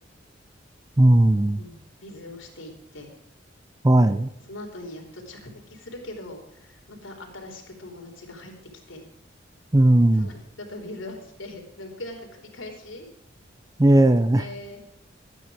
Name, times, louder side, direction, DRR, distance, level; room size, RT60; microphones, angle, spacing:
voice 1, 1.0-1.6 3.8-4.3 9.7-10.3 13.8-14.5, right 1 dB, 20° right, 13 dB, 0.5 m, -17 dB
voice 2, 1.6-3.1 4.5-8.5 8.9-9.1 10.1-13.1 14.2-14.8, left 1 dB, 75° left, 2 dB, 3.3 m, -41 dB
12.5 x 9.3 x 4.9 m, 0.82 s
head